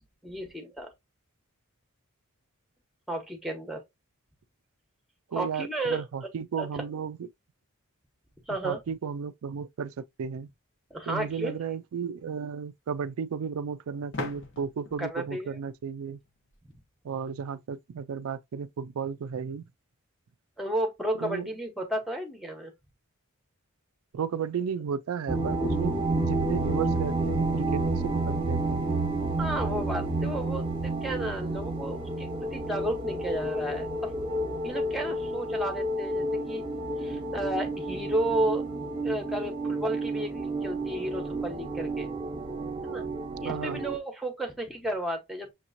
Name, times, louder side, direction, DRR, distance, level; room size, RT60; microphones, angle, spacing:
voice 1, 0.2-0.9 3.1-3.8 5.3-6.0 6.6-6.8 8.5-8.8 10.9-11.6 15.0-15.6 20.6-22.7 29.4-34.1 34.6-36.6 37.0-38.6 39.0-42.1 42.8-43.0 43.4-45.5, right 1 dB, ahead, 0.9 m, -33 dB
voice 2, 5.3-7.3 8.6-10.5 11.1-16.2 17.0-19.6 21.1-21.5 24.1-29.0 43.4-43.8, right 6 dB, 75° right, 0.3 m, -34 dB
sound 1, 14.1-16.8, left 3 dB, 55° left, 0.9 m, -41 dB
sound 2, 25.3-44.0, right 2 dB, 25° right, 0.9 m, -30 dB
6.3 x 2.9 x 2.6 m
head